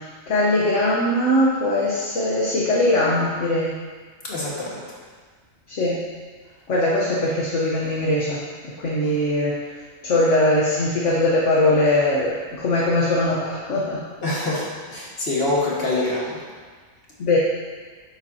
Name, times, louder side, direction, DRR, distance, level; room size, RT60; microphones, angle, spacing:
voice 1, 0.0-3.8 5.7-6.0 6.7-9.8 10.0-14.0 17.2-17.4, left 1 dB, 60° left, -5 dB, 1.4 m, -21 dB
voice 2, 4.3-4.8 9.0-9.1 14.2-14.6 14.9-16.4, left 2 dB, 45° left, -5 dB, 2.0 m, -25 dB
9.6 x 7.5 x 2.8 m, 1.5 s
omnidirectional pair, 1.4 m